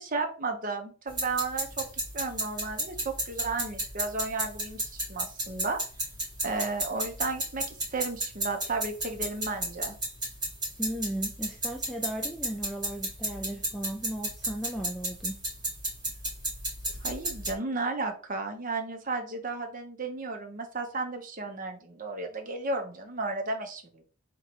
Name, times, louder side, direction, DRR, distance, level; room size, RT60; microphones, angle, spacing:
voice 1, 0.0-1.9 2.1-5.8 6.4-10.0 17.0-24.0, right 3 dB, 40° right, 4 dB, 0.8 m, -33 dB
sound 1, 1.1-17.5, right 1 dB, 20° right, 2.0 m, -34 dB
voice 2, 10.8-15.4, right 1 dB, ahead, 0 dB, 0.3 m, -36 dB
3.8 x 3.0 x 4.5 m, 0.38 s
head